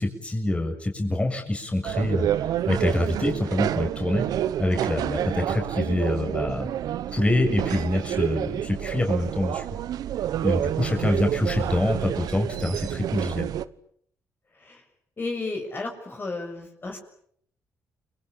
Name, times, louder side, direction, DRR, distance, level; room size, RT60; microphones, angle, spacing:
voice 1, 0.0-2.3 2.7-4.2 4.6-6.7 7.1-9.7 10.4-13.5, left 1 dB, 20° left, 3 dB, 7.2 m, -25 dB
sound 1, 1.8-13.6, right 11 dB, 80° right, 1.1 m, -28 dB
voice 2, 15.2-17.0, left 3 dB, 35° left, 2 dB, 7.1 m, -33 dB
30.0 x 23.0 x 8.7 m, 0.67 s
cardioid pair, 80°, 6 cm